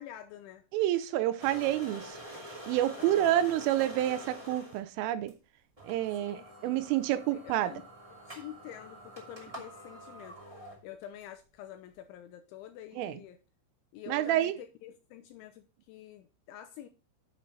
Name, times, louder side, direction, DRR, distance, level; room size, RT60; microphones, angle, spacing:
voice 1, 0.0-0.6 3.0-3.4 6.2-7.8 8.2-10.4 10.8-13.4 13.9-16.9, left 11 dB, 85° left, 2.9 m, -48 dB
voice 2, 0.7-2.4 2.7-5.3 5.8-7.7 12.9-13.2 14.1-14.5, right 13 dB, 85° right, 3.2 m, -29 dB
sound 1, 1.4-4.8 5.3-5.4 5.8-11.2, equal, 20° right, 0.8 m, -47 dB
9.9 x 7.1 x 3.8 m
omnidirectional pair, 5.9 m